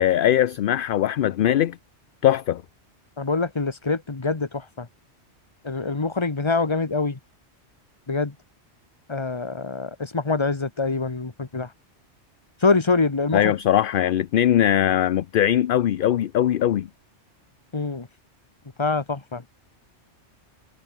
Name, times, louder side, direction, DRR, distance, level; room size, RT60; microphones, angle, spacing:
voice 1, 0.0-1.8 2.2-2.6 13.3-16.9, left 11 dB, 60° left, 0.7 m, -20 dB
voice 2, 3.2-4.9 5.6-7.2 8.1-8.3 9.1-11.7 12.6-13.5 17.7-18.1 18.8-19.4, left 3 dB, 25° left, 1.3 m, -25 dB
omnidirectional pair, 1.2 m